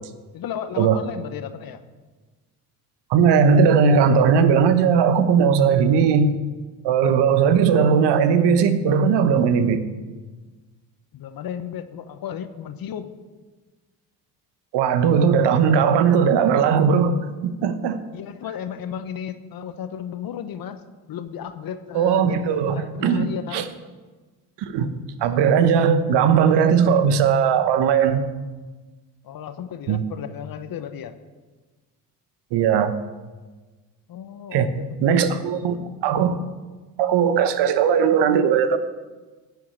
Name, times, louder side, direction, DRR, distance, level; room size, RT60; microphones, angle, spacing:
voice 1, 0.3-1.8 11.1-13.1 18.1-20.8 21.1-23.6 29.2-31.2 34.1-35.6, left 9 dB, 50° left, 11 dB, 1.0 m, -34 dB
voice 2, 3.1-6.3 6.8-9.8 14.7-18.0 21.9-23.6 24.6-24.9 25.2-28.2 29.9-30.0 32.5-32.9 34.5-34.7 35.0-36.3 37.0-38.8, right 6 dB, 65° right, 11 dB, 1.1 m, -18 dB
10.5 x 5.8 x 8.6 m, 1.3 s
hypercardioid pair, 60°, 45 cm